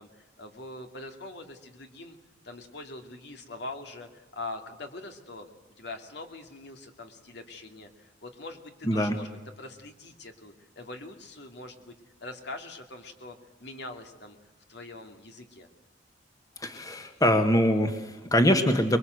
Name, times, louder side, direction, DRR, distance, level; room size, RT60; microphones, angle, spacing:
voice 1, 0.0-2.2 2.4-5.5 5.8-9.3 9.6-11.9 12.2-14.4 14.7-15.7, left 2 dB, 65° left, 4 dB, 2.6 m, -43 dB
voice 2, 16.6-19.0, equal, 20° left, 6 dB, 1.6 m, -23 dB
24.5 x 22.5 x 8.0 m, 1.2 s
head